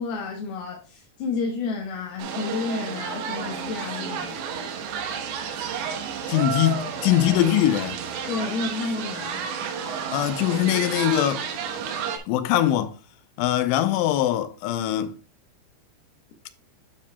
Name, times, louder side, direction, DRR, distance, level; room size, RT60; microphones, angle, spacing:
voice 1, 0.0-4.4 8.3-9.4, left 4 dB, 70° left, 2.6 m, -30 dB
sound 1, 2.2-12.2, right 7 dB, 80° right, 3.3 m, -31 dB
voice 2, 6.3-8.0 10.1-11.4 12.3-12.9 13.4-15.1, left 12 dB, 90° left, 3.2 m, -22 dB
9.6 x 7.3 x 2.2 m
omnidirectional pair, 5.3 m